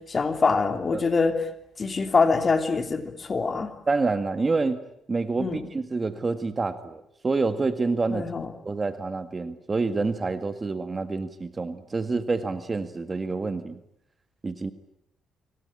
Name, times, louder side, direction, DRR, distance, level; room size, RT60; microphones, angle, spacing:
voice 1, 0.0-1.4 1.8-3.7 5.4-5.6 8.1-8.5, left 4 dB, 35° left, 7 dB, 3.3 m, -24 dB
voice 2, 3.9-4.8 5.1-8.3 8.6-13.8 14.4-14.7, right 3 dB, 30° right, 10 dB, 1.8 m, -27 dB
25.5 x 25.0 x 8.8 m, 0.74 s
cardioid pair, 90°, 0 cm